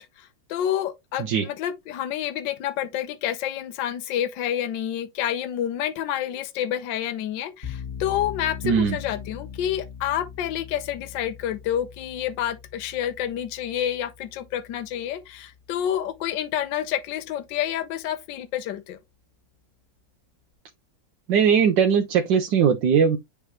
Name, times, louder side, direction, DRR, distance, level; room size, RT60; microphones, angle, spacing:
voice 1, 0.0-19.0, left 10 dB, 70° left, 1.4 m, -29 dB
sound 1, 7.6-16.5, left 8 dB, 20° left, 1.6 m, -41 dB
voice 2, 8.6-9.0 21.3-23.2, right 7 dB, 70° right, 1.3 m, -20 dB
9.9 x 3.4 x 3.1 m
omnidirectional pair, 2.1 m